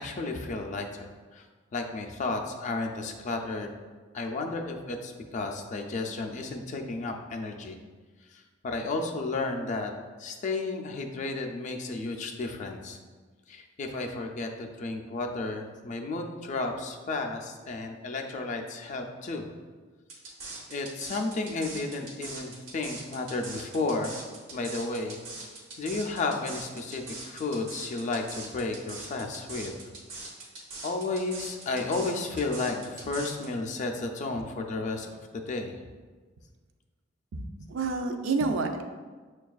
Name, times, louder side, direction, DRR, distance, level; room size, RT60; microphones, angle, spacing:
voice 1, 0.0-1.4 1.7-3.7 4.1-7.8 8.3-9.9 10.2-13.0 13.5-19.4 20.7-24.2 24.5-25.2 25.8-29.7 30.8-35.1 35.5-35.8, left 3 dB, 40° left, 3 dB, 0.3 m, -33 dB
sound 1, 20.1-33.5, right 3 dB, 85° right, 0.9 m, -42 dB
voice 2, 37.7-38.8, right 3 dB, 65° right, 5 dB, 0.4 m, -28 dB
6.5 x 2.3 x 2.3 m, 1.4 s
head